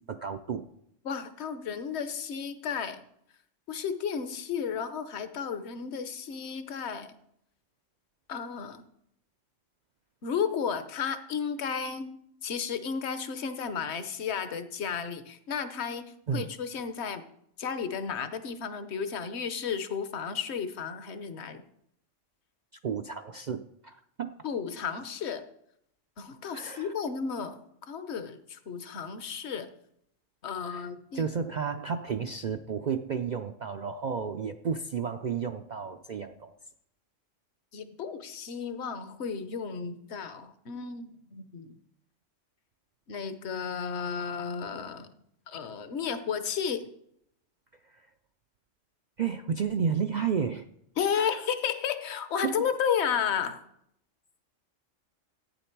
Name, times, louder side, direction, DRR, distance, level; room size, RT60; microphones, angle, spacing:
voice 1, 0.1-0.7 16.3-16.5 22.8-24.4 26.5-26.9 30.6-30.9 31.1-36.5 47.8-48.1 49.2-50.7 51.1-51.4 52.4-52.6, right 6 dB, 65° right, 8 dB, 0.4 m, -32 dB
voice 2, 1.0-3.0 3.7-7.1 8.3-8.8 10.2-12.1 12.4-17.2 17.6-21.6 24.4-25.4 26.2-29.7 30.4-31.3 37.7-41.8 43.1-45.1 45.5-46.9 51.0-53.6, left 7 dB, 60° left, 10 dB, 1.1 m, -33 dB
14.5 x 9.4 x 4.6 m, 0.75 s
omnidirectional pair, 1.3 m